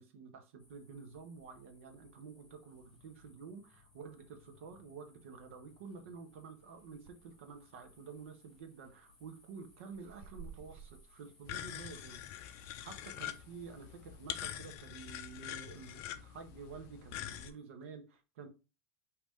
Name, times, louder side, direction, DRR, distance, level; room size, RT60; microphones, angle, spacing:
voice 1, 0.0-18.5, right 5 dB, 80° right, 1.0 m, -50 dB
sound 1, 0.6-17.7, left 3 dB, 10° left, 1.1 m, -67 dB
sound 2, 6.6-7.3 7.7-7.8 8.5-8.8 9.4-11.1, right 6 dB, 50° right, 0.6 m, -52 dB
sound 3, 11.4-17.5, left 11 dB, 40° left, 0.4 m, -44 dB
4.8 x 3.0 x 3.6 m
supercardioid pair, 175°, 7 cm